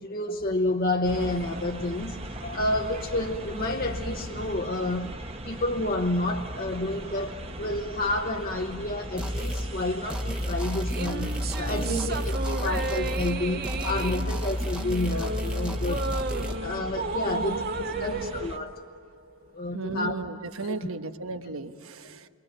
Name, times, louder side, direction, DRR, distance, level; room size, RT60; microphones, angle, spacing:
voice 1, 0.0-5.2 5.4-16.1 16.6-18.7 19.5-20.2 20.6-20.9, left 2 dB, 40° left, 3 dB, 0.9 m, -30 dB
sound 1, 1.0-18.6, right 1 dB, 30° right, 1.1 m, -39 dB
sound 2, 9.2-9.7 10.1-13.4 13.6-16.6, equal, 5° right, 1.0 m, -31 dB
sound 3, 10.8-19.4, right 3 dB, 45° right, 0.9 m, -34 dB
voice 2, 11.7-12.1 17.3-18.3 19.7-22.3, right 3 dB, 80° right, 8 dB, 1.2 m, -36 dB
28.5 x 24.0 x 7.8 m, 2.3 s
head